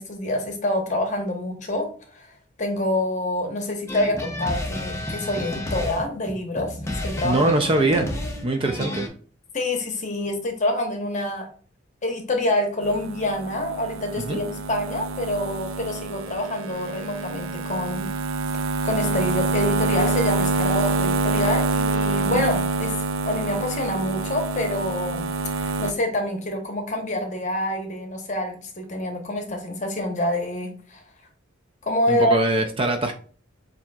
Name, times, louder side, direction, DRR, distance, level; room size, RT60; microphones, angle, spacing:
voice 1, 0.0-7.5 9.5-11.5 12.0-18.1 18.8-23.0 23.2-25.3 25.5-31.0 31.8-32.4, left 1 dB, 35° left, 0.9 m, -27 dB
sound 1, 3.9-9.1, left 1 dB, 15° left, 0.6 m, -31 dB
voice 2, 7.2-8.1 8.4-9.1 14.3-14.4 22.3-22.4 32.1-33.1, right 2 dB, 25° right, 0.4 m, -22 dB
sound 2, 12.8-25.9, right 3 dB, 85° right, 0.5 m, -26 dB
7.3 x 2.7 x 2.3 m
head